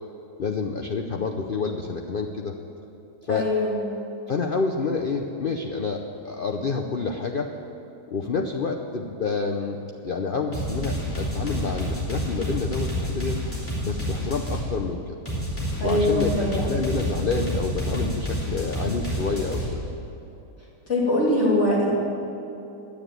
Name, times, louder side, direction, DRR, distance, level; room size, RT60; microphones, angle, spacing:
voice 1, 0.4-2.5 3.2-3.5 4.3-7.5 8.1-13.4 13.8-15.2 15.8-19.8, left 4 dB, 90° left, 2 dB, 0.4 m, -28 dB
voice 2, 3.3-3.8 15.8-16.5 20.9-22.0, left 1 dB, 40° left, -6 dB, 3.3 m, -22 dB
sound 1, 10.5-14.6 15.2-19.7, equal, 5° left, 3.3 m, -29 dB
10.0 x 9.6 x 9.0 m, 2.9 s
omnidirectional pair, 1.8 m